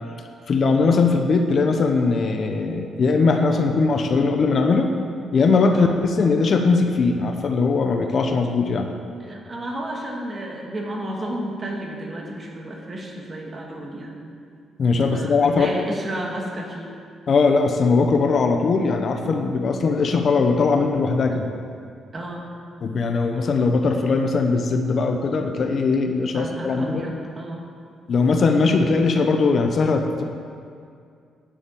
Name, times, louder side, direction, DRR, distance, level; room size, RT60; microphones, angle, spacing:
voice 1, 0.5-4.9 5.3-8.9 14.8-15.7 17.3-21.5 22.8-27.0 28.1-30.2, left 4 dB, 45° left, 5 dB, 0.9 m, -20 dB
voice 2, 9.2-14.2 15.1-16.9 22.1-22.5 26.3-27.6, right 1 dB, 30° right, 0 dB, 2.0 m, -32 dB
10.0 x 7.2 x 8.6 m, 2.3 s
cardioid pair, 130°, 0 cm